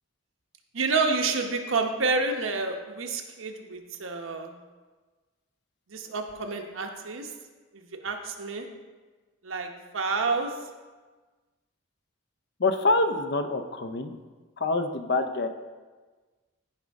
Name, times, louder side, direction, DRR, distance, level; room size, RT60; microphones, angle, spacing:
voice 1, 0.7-4.5 5.9-7.3 7.7-8.7 9.4-9.7 9.9-10.5, right 4 dB, 85° right, 4 dB, 1.0 m, -29 dB
voice 2, 12.6-14.2 14.6-15.5, left 2 dB, 55° left, 8 dB, 0.6 m, -26 dB
15.0 x 5.1 x 3.6 m, 1.3 s
head